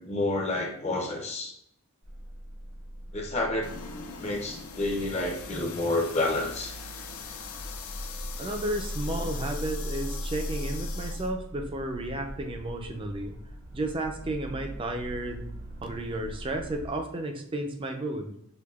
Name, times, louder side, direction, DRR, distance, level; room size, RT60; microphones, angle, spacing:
voice 1, 0.0-1.5 3.1-3.7 4.2-6.7, left 2 dB, 30° left, 1 dB, 0.6 m, -29 dB
sound 1, 2.0-16.9, equal, 70° right, 0.9 m, -39 dB
sound 2, 3.6-11.3, left 6 dB, 75° left, 0.5 m, -42 dB
voice 2, 8.4-13.3 13.7-15.5 15.8-18.3, right 1 dB, 25° right, 4 dB, 0.4 m, -33 dB
6.2 x 2.7 x 2.3 m, 0.72 s
head